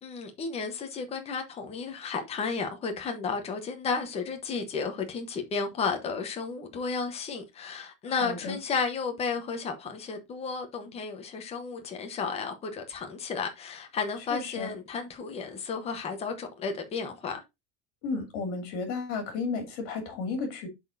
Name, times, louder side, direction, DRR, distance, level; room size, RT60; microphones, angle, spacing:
voice 1, 0.0-17.4, left 5 dB, 15° left, 0.9 m, -33 dB
voice 2, 8.1-8.6 14.3-14.7 18.0-20.7, left 4 dB, 50° left, 2.6 m, -33 dB
11.0 x 4.1 x 2.6 m
cardioid pair, 175°, 39 cm